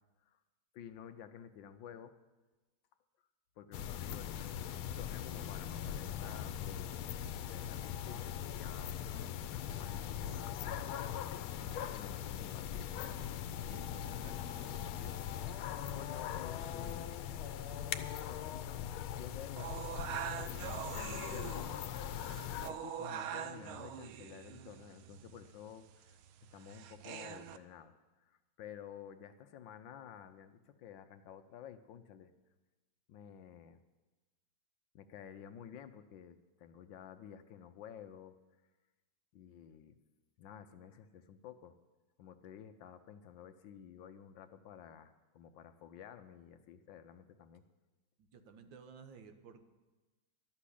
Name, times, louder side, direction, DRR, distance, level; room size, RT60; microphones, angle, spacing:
voice 1, 0.7-2.1 3.6-6.9 7.3-11.4 11.9-13.0 15.9-17.1 18.0-19.7 21.3-22.4 22.7-26.2 26.5-32.3 33.1-33.8 34.9-38.4 39.3-40.0 40.4-41.7 42.2-47.6, left 9 dB, 70° left, 9 dB, 1.3 m, -52 dB
sound 1, 3.7-22.7, left 10 dB, 90° left, 1.5 m, -40 dB
voice 2, 13.6-15.2 15.9-16.0 48.2-49.6, right 6 dB, 70° right, 8 dB, 1.6 m, -55 dB
sound 2, 19.6-27.6, right 9 dB, 90° right, 1.5 m, -44 dB
12.0 x 7.3 x 10.0 m, 1.2 s
omnidirectional pair, 2.2 m